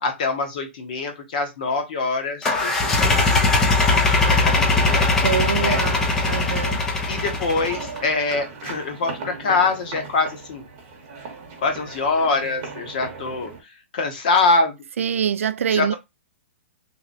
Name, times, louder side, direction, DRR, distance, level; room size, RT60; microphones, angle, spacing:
voice 1, 0.0-2.9 3.2-4.2 4.4-5.1 5.6-5.8 7.1-10.6 11.6-13.5 13.9-14.7 15.7-15.9, left 3 dB, 40° left, 1.0 m, -24 dB
sound 1, 2.4-8.0, left 3 dB, 5° left, 0.4 m, -20 dB
voice 2, 5.2-6.8 15.0-15.9, right 8 dB, 85° right, 0.3 m, -24 dB
sound 2, 7.1-13.6, right 4 dB, 25° right, 0.9 m, -37 dB
2.9 x 2.9 x 2.6 m
hypercardioid pair, 170°, 7 cm